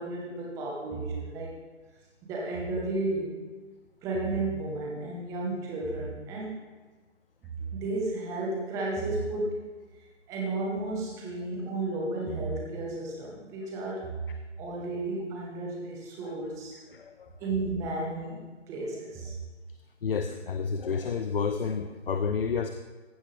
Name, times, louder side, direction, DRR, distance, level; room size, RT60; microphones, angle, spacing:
voice 1, 0.0-1.6 2.2-3.3 4.0-6.6 7.7-9.7 10.3-14.2 14.6-16.8 17.4-19.3, right 2 dB, 10° right, -3 dB, 1.2 m, -33 dB
voice 2, 16.9-17.3 20.0-22.7, left 5 dB, 50° left, 9 dB, 0.6 m, -30 dB
15.0 x 7.5 x 3.4 m, 1.3 s
figure-of-eight pair, 150°, 36 cm